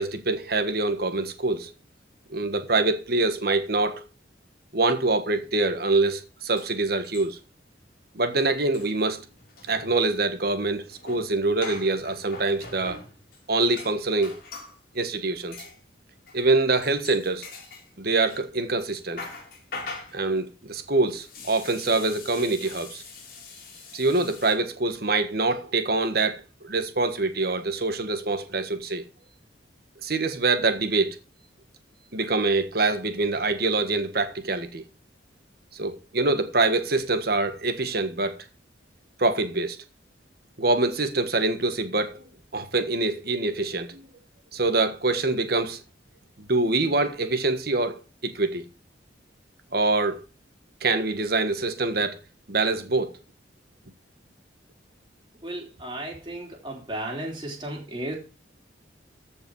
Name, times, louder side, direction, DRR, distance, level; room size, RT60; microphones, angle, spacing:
voice 1, 0.0-1.7 2.3-4.0 4.7-7.4 8.1-9.2 9.7-13.0 13.5-14.4 14.9-15.6 16.3-17.5 18.0-19.2 20.1-23.0 23.9-29.0 30.0-31.2 32.1-34.8 35.7-38.4 39.2-39.8 40.6-42.2 42.5-44.0 44.5-45.8 46.4-48.6 49.7-50.2 50.8-52.2 52.5-53.2, right 3 dB, 55° right, 1.5 m, -25 dB
sound 1, 6.2-6.3 6.6-7.6 7.8-8.0 8.2-14.8 15.5-15.8 16.3-16.5 16.8-18.4 18.8-24.5, left 3 dB, 50° left, 3.7 m, -43 dB
voice 2, 55.4-58.1, right 1 dB, 25° right, 3.3 m, -34 dB
14.5 x 5.4 x 4.8 m
head